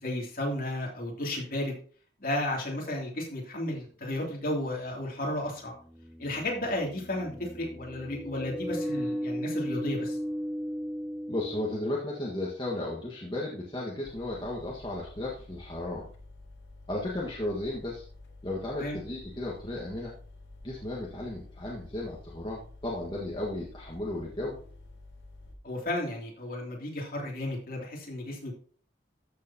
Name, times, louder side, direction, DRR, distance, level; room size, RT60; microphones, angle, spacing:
voice 1, 0.0-1.8 2.2-5.7 6.2-10.2 18.8-19.0 25.6-28.5, left 1 dB, 45° left, -1 dB, 2.9 m, -33 dB
sound 1, 3.9-4.0 5.4-12.3, equal, 5° right, 1.0 m, -36 dB
voice 2, 11.3-16.1 16.9-18.0 18.4-20.1 20.6-24.6, left 1 dB, 25° left, -4 dB, 1.5 m, -34 dB
sound 2, 14.0-25.5, left 2 dB, 75° left, 2.1 m, -50 dB
13.5 x 6.7 x 2.9 m, 0.43 s
head